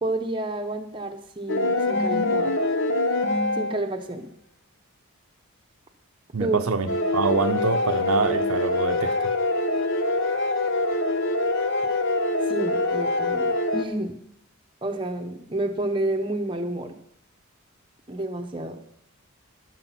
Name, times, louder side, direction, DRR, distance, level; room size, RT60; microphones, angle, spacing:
voice 1, 0.0-2.5 3.6-4.3 6.4-6.6 12.5-14.2 14.8-17.0 18.1-18.8, right 2 dB, 20° right, 4 dB, 0.8 m, -29 dB
sound 1, 1.5-3.9 6.9-13.8, left 2 dB, 55° left, 0.8 m, -24 dB
voice 2, 6.3-9.1, right 4 dB, 75° right, 7 dB, 0.7 m, -25 dB
13.5 x 6.4 x 5.8 m, 0.76 s
head